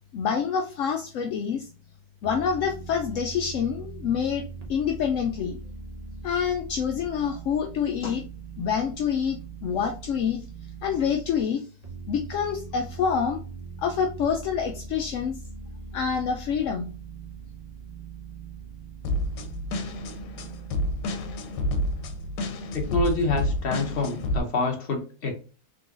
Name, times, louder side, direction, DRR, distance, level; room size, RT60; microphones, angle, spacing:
voice 1, 0.1-1.7 2.2-5.6 6.2-8.2 8.6-10.4 10.8-11.6 12.1-13.4 13.8-15.4 15.9-16.9, left 7 dB, 70° left, 4 dB, 0.7 m, -27 dB
sound 1, 2.2-11.4 11.8-21.0, right 5 dB, 35° right, 0.7 m, -41 dB
sound 2, 19.0-24.4, left 1 dB, 85° left, 1.3 m, -29 dB
voice 2, 22.7-25.3, left 3 dB, 40° left, 2 dB, 1.1 m, -27 dB
3.9 x 3.7 x 2.4 m, 0.37 s
omnidirectional pair, 1.7 m